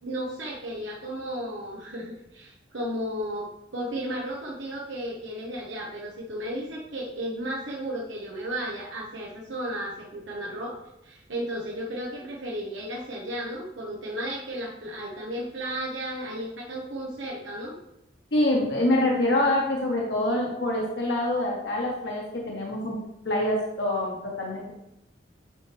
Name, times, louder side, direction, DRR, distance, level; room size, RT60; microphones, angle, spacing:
voice 1, 0.0-10.8 11.0-17.7, right 1 dB, 90° right, -3 dB, 1.2 m, -34 dB
voice 2, 18.3-23.0 23.2-24.8, left 1 dB, 65° left, -2 dB, 1.4 m, -25 dB
9.1 x 5.9 x 3.4 m, 0.85 s
head